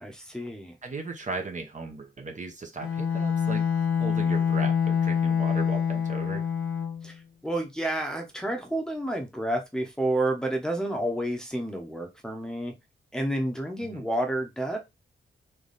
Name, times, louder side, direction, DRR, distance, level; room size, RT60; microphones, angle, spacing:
voice 1, 0.0-0.8 7.0-12.7 13.1-14.8, right 1 dB, 5° left, 0.9 m, -30 dB
voice 2, 0.8-6.4 13.8-14.1, right 4 dB, 35° right, 0.9 m, -37 dB
Bowed string instrument, 2.8-7.1, left 7 dB, 85° left, 0.6 m, -26 dB
3.4 x 3.1 x 4.0 m
wide cardioid pair, 140°, 21 cm